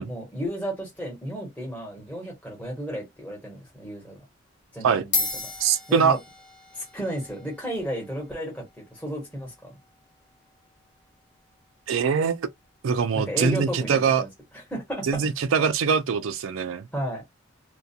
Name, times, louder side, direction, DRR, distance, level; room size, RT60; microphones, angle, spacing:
voice 1, 0.0-4.2 4.7-5.3 5.6-6.2 6.7-9.7 13.1-14.3 14.5-15.1 16.9-17.2, equal, 5° left, 1.1 m, -33 dB
sound 1, 3.5-3.8 4.6-4.7 5.0-13.7, left 3 dB, 55° left, 1.2 m, -37 dB
voice 2, 5.6-6.2 11.9-12.5 12.8-14.2 15.1-16.9, right 6 dB, 90° right, 0.4 m, -23 dB
2.4 x 2.2 x 2.6 m
head